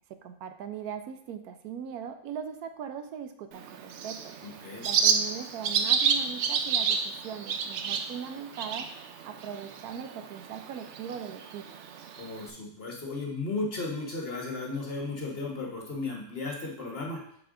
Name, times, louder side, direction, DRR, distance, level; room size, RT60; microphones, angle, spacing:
voice 1, 0.1-4.4 4.8-8.9 9.2-11.7, right 8 dB, 80° right, 8 dB, 1.1 m, -40 dB
Bird, 3.5-12.5, right 6 dB, 65° right, 0.7 m, -30 dB
voice 2, 4.4-4.9 12.2-17.2, left 3 dB, 40° left, -2 dB, 1.4 m, -35 dB
6.7 x 4.5 x 3.8 m, 0.69 s
omnidirectional pair, 1.6 m